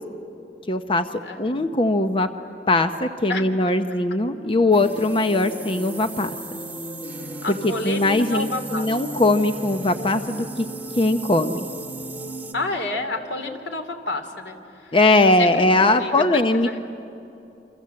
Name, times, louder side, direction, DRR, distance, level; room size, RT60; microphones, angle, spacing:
voice 1, 0.7-1.1 1.4-2.3 2.7-6.4 7.5-10.7 11.0-11.7 14.9-16.8, left 2 dB, 30° left, 8 dB, 0.8 m, -20 dB
voice 2, 1.2-1.6 3.3-3.4 7.4-8.9 12.5-14.6 14.9-15.0 15.4-16.2 16.5-16.8, left 2 dB, 85° left, 6 dB, 2.8 m, -29 dB
sound 1, 4.7-12.5, right 1 dB, 10° right, 2.1 m, -35 dB
29.0 x 26.0 x 7.7 m, 2.8 s
head